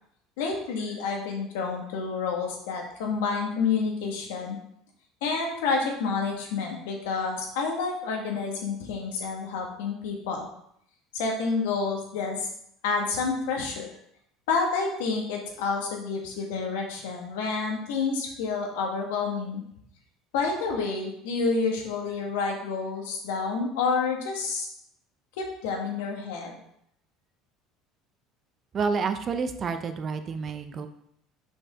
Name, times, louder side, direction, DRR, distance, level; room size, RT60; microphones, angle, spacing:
voice 1, 0.4-4.6 5.2-10.5 11.1-12.4 12.8-13.9 14.5-19.6 20.3-24.7 25.4-26.6, left 4 dB, 85° left, 1 dB, 1.7 m, -29 dB
voice 2, 28.7-30.9, right 5 dB, 40° right, 8 dB, 0.8 m, -29 dB
6.3 x 5.6 x 3.7 m, 0.71 s
supercardioid pair, 100°, 0 cm